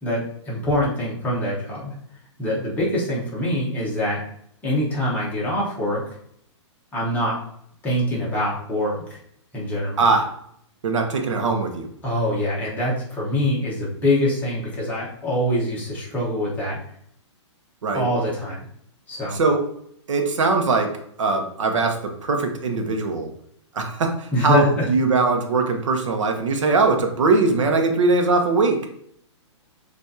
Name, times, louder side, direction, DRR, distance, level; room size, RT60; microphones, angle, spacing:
voice 1, 0.0-1.9 2.4-4.2 4.6-6.0 6.9-7.4 7.8-9.2 9.5-10.0 12.0-16.8 17.9-18.7 19.1-19.4 24.3-24.9, left 1 dB, 10° left, -6 dB, 1.0 m, -24 dB
voice 2, 10.0-10.3 10.8-11.9 17.8-18.1 19.3-19.7 20.1-23.3 23.7-28.8, right 3 dB, 85° right, 4 dB, 0.9 m, -21 dB
6.5 x 2.6 x 2.7 m, 0.69 s
hypercardioid pair, 165°, 16 cm